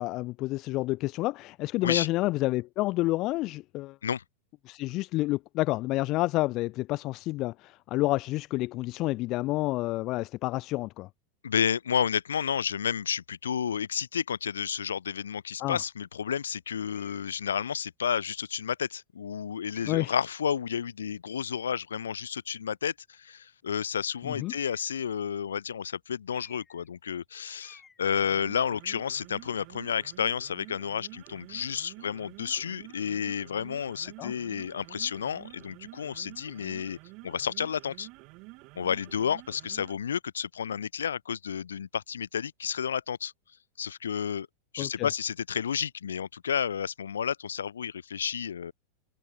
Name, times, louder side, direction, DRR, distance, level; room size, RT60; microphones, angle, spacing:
voice 1, 0.0-4.0 4.7-11.1 15.6-15.8 19.8-20.1 24.2-24.5 34.2-34.3 44.8-45.1, left 19 dB, 40° left, 0.3 m, -29 dB
voice 2, 11.4-37.0 37.2-38.1 38.7-43.3 43.8-44.5 44.7-48.7, left 8 dB, 70° left, 1.6 m, -31 dB
sound 1, 16.9-17.3 18.1-18.2 19.7-20.3 24.4-25.0 26.3-26.9 27.2-27.3 27.6-28.0, left 5 dB, 15° left, 4.7 m, -55 dB
sound 2, 28.1-40.1, right 26 dB, 40° right, 1.7 m, -49 dB
figure-of-eight pair, 90°, 0 cm